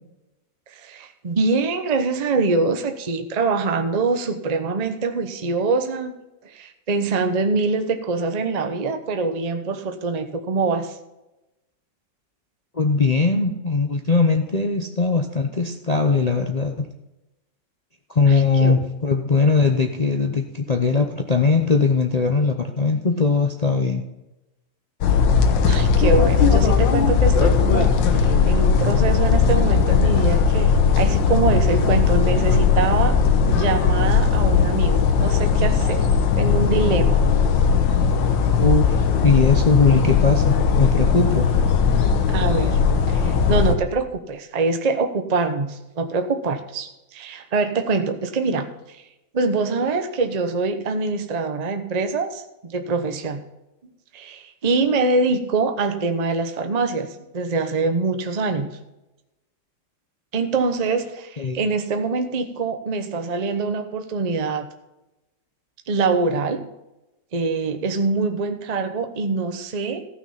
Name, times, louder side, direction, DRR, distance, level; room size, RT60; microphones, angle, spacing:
voice 1, 0.7-6.1 6.4-10.9 18.3-18.8 25.6-33.1 33.5-36.1 36.4-37.2 38.5-38.6 42.3-42.8 43.1-49.0 49.3-53.4 54.1-57.1 57.3-58.7 60.3-64.7 65.9-66.7 67.3-70.1, right 3 dB, 30° right, 6 dB, 0.7 m, -24 dB
voice 2, 12.7-16.9 18.1-24.0 38.6-39.0 39.2-41.5 61.4-61.6, left 4 dB, 50° left, 4 dB, 0.4 m, -20 dB
sound 1, 25.0-43.7, left 6 dB, 85° left, 1.8 m, -18 dB
14.5 x 6.3 x 5.7 m, 0.96 s
omnidirectional pair, 2.0 m